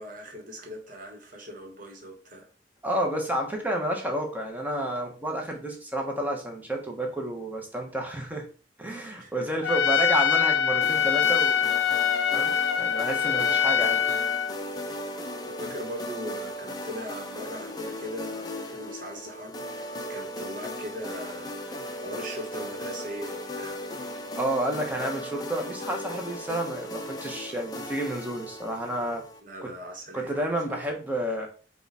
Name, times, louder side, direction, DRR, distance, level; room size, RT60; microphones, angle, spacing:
voice 1, 0.0-2.5 9.2-9.9 15.6-23.8 29.4-30.9, equal, 50° right, 1.2 m, -40 dB
voice 2, 2.8-8.5 8.8-11.6 12.3-14.0 24.4-29.2 29.6-29.7 30.1-31.5, right 1 dB, 10° right, 0.9 m, -30 dB
Trumpet, 9.6-14.5, left 7 dB, 80° left, 0.4 m, -24 dB
sound 1, 10.8-29.4, equal, 20° left, 0.5 m, -37 dB
4.7 x 2.4 x 4.1 m
head